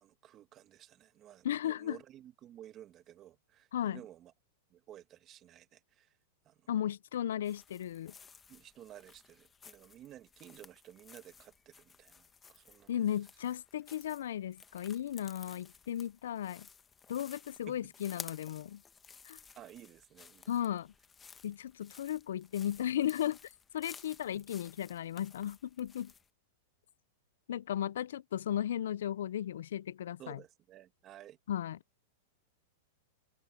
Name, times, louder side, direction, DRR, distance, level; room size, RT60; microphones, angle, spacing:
voice 1, 0.0-4.3 4.7-6.1 6.5-6.6 8.5-13.0 17.3-17.4 17.7-17.9 19.6-20.5 24.3-24.5 30.2-31.4, right 12 dB, 30° right, 2.0 m, -54 dB
voice 2, 1.4-2.0 3.7-4.0 6.7-8.1 12.9-16.7 17.1-18.8 19.3-19.4 20.5-20.9 21.4-26.1 27.5-30.4 31.5-31.8, left 10 dB, 80° left, 0.4 m, -35 dB
sound 1, 7.4-26.3, left 6 dB, 15° left, 1.1 m, -55 dB
supercardioid pair, 150°, 0 cm